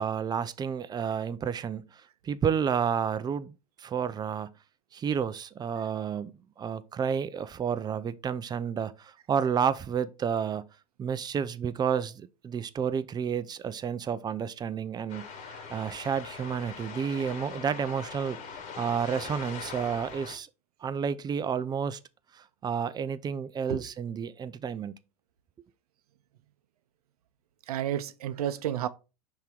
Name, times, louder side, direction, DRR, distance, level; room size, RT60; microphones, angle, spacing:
voice 1, 0.0-4.5 4.9-10.7 11.0-20.5 20.8-22.0 22.3-25.0, right 7 dB, 20° right, 0.4 m, -31 dB
sound 1, 15.1-20.4, left 6 dB, 45° left, 1.6 m, -42 dB
voice 2, 27.7-28.9, right 11 dB, 70° right, 0.6 m, -31 dB
5.5 x 3.7 x 4.6 m
hypercardioid pair, 85°, 20 cm